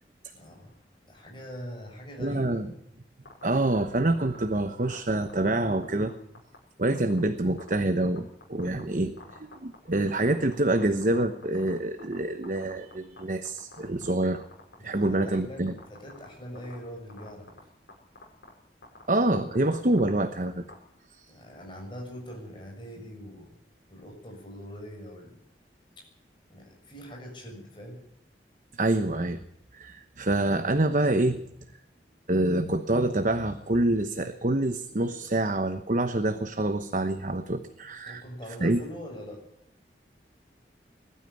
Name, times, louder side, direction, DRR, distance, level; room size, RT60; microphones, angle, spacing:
voice 1, 0.3-0.8 1.0-2.7 14.8-17.6 21.2-23.6 23.9-25.4 26.0-26.1 26.5-28.0 38.1-39.4, equal, 30° left, 1 dB, 6.9 m, -43 dB
voice 2, 2.2-2.7 3.4-6.1 6.8-14.4 14.8-15.7 19.1-20.6 21.1-21.2 28.8-29.4 29.7-31.4 32.3-38.2 38.6-38.8, right 2 dB, 45° right, 8 dB, 1.0 m, -26 dB
sound 1, 3.2-3.8 4.1-4.4 4.9-6.1 6.3-6.6 6.9-7.2 7.6-7.7 8.1-8.8 9.2-12.2 12.4-13.2 13.4-14.1 14.3-15.2 15.7-16.2 16.5-16.7 17.1-17.6 17.9-18.0 18.2-18.5 18.8-19.0 19.3-20.7, left 3 dB, 80° left, 6.1 m, -47 dB
20.5 x 13.0 x 9.9 m, 0.78 s
head